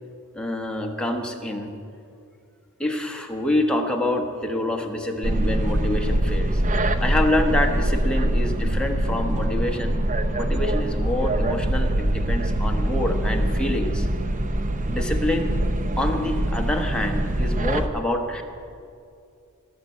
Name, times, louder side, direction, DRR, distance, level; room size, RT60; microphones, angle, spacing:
voice 1, 0.3-1.7 2.8-6.6 7.0-10.0 10.4-14.1 14.9-15.6 16.0-18.4, left 1 dB, 5° left, 2 dB, 1.1 m, -26 dB
sound 1, 5.2-17.9, right 1 dB, 35° right, 0.7 m, -23 dB
19.0 x 6.8 x 8.3 m, 2.5 s
head